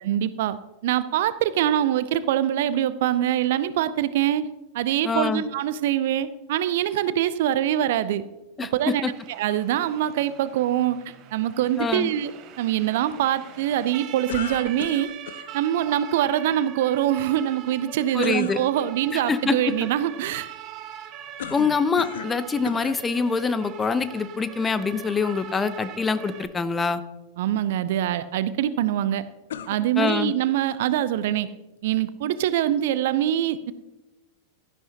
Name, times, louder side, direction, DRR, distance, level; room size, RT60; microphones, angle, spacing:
voice 1, 0.0-4.5 4.7-8.2 8.7-9.0 9.3-12.3 12.6-15.1 15.5-20.5 27.4-29.2 29.7-31.5 31.8-33.7, right 11 dB, 55° right, 15 dB, 0.6 m, -24 dB
voice 2, 5.0-5.4 8.6-8.7 11.8-12.1 18.1-18.6 19.1-19.5 21.5-27.0 30.0-30.3, left 5 dB, 15° left, 13 dB, 0.7 m, -25 dB
Siren, 8.8-26.5, right 10 dB, 35° right, 1.1 m, -42 dB
sound 1, 14.3-15.5 18.2-18.6 21.4-22.4 22.6-23.0 23.8-23.9 29.5-30.4, left 9 dB, 60° left, 0.6 m, -36 dB
16.5 x 12.5 x 2.9 m, 1.0 s
figure-of-eight pair, 90°, 0 cm